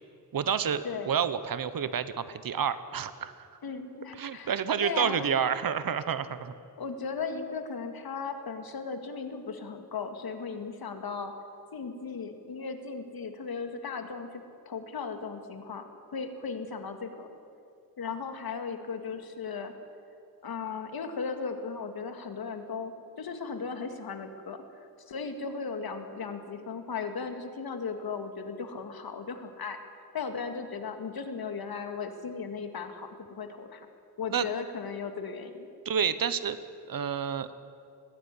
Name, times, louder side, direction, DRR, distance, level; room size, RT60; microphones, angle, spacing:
voice 1, 0.3-3.5 4.2-6.5 34.3-34.5 35.8-36.6 36.9-37.5, right 7 dB, 65° right, 13 dB, 1.1 m, -29 dB
voice 2, 3.6-4.5 4.8-5.5 6.8-11.3 11.7-17.3 18.0-19.7 20.4-22.9 23.2-24.6 25.1-29.8 30.1-33.9 34.2-35.7, left 5 dB, 80° left, 7 dB, 2.1 m, -36 dB
20.5 x 16.0 x 9.7 m, 2.6 s
wide cardioid pair, 125°, 36 cm